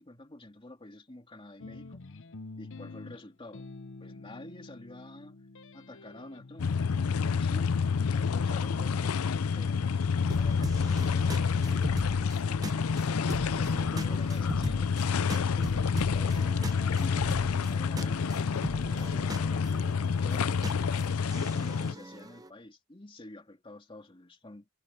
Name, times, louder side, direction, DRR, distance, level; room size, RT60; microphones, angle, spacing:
voice 1, 0.0-2.0 2.6-3.7 4.0-5.4 5.7-6.8 7.1-7.7 8.2-10.0 10.4-11.8 12.4-14.9 15.3-19.6 20.1-24.7, left 1 dB, 25° left, 2.3 m, -48 dB
sound 1, 1.6-10.8, left 3 dB, 60° left, 0.8 m, -47 dB
sound 2, 6.6-21.9, left 5 dB, 85° left, 0.5 m, -28 dB
sound 3, 10.3-22.5, right 1 dB, 15° right, 1.0 m, -40 dB
head